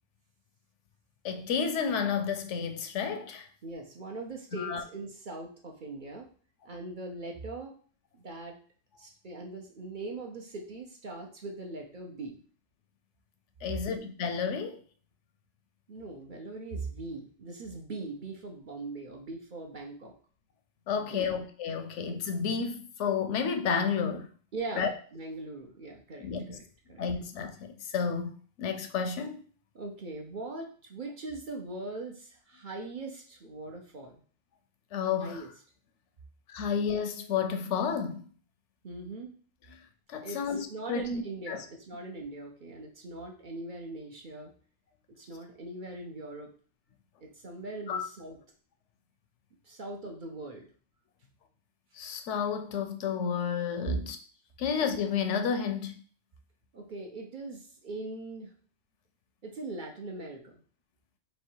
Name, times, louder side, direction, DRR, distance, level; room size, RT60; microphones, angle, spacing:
voice 1, 1.2-3.5 4.5-4.8 13.6-14.8 20.9-24.3 24.8-24.9 26.2-26.6 27.0-28.3 28.6-29.4 34.9-35.4 36.5-38.3 39.7-39.8 40.1-41.2 41.5-41.6 47.9-48.1 51.9-54.2 54.6-55.9, left 6 dB, 80° left, 0.9 m, -31 dB
voice 2, 3.6-6.3 6.6-7.8 8.1-8.6 9.0-12.4 15.9-20.1 21.0-21.3 21.8-22.0 24.5-27.0 29.7-34.2 35.2-35.5 38.8-39.3 40.2-40.4 40.7-44.5 45.1-46.5 47.2-48.4 49.6-50.7 53.9-54.0 56.7-58.5 59.4-60.6, right 3 dB, 50° right, 0.8 m, -41 dB
3.3 x 3.0 x 4.5 m
omnidirectional pair, 1.2 m